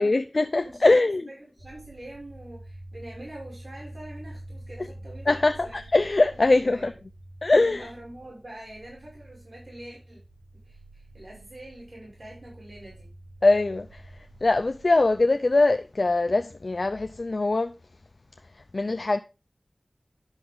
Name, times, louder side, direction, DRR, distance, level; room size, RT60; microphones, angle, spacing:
voice 1, 0.0-1.2 5.3-6.9 7.4-7.9 13.4-14.0 14.4-17.7 18.7-19.2, left 2 dB, 65° left, 0.5 m, -22 dB
voice 2, 0.6-5.3 5.6-5.8 6.7-6.9 7.5-10.2 10.6-13.1, right 1 dB, 60° right, 6.3 m, -44 dB
sound 1, 1.6-15.2, right 1 dB, 75° right, 4.3 m, -47 dB
10.5 x 6.1 x 3.8 m
wide cardioid pair, 65°, 0 cm